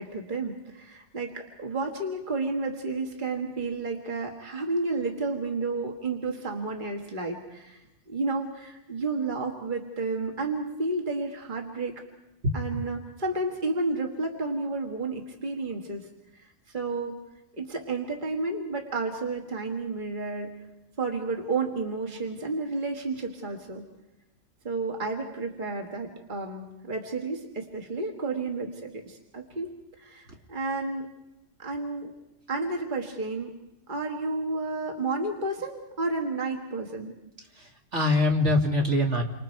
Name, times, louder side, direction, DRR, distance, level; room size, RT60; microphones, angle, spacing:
voice 1, 0.0-7.8 8.1-12.0 12.5-16.1 16.4-17.2 17.6-20.5 21.0-23.8 24.6-29.7 30.0-31.2 31.6-32.1 32.5-33.6 33.9-37.1, right 3 dB, 35° right, 2 dB, 2.0 m, -31 dB
voice 2, 12.4-12.8 37.6-39.2, left 2 dB, 60° right, 1 dB, 2.6 m, -24 dB
29.0 x 25.5 x 4.6 m, 0.93 s
omnidirectional pair, 1.4 m